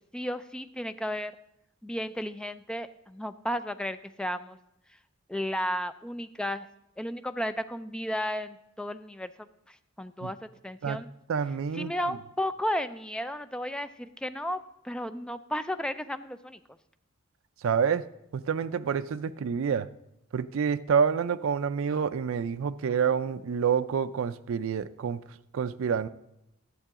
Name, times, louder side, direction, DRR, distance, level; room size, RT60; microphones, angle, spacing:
voice 1, 0.1-1.3 1.8-4.6 5.3-6.7 7.0-11.1 11.7-16.6, equal, 5° left, 11 dB, 0.3 m, -34 dB
voice 2, 11.3-12.2 17.6-18.1 18.3-19.9 20.3-26.1, right 6 dB, 70° right, 12 dB, 0.4 m, -28 dB
12.0 x 7.5 x 3.6 m, 0.83 s
head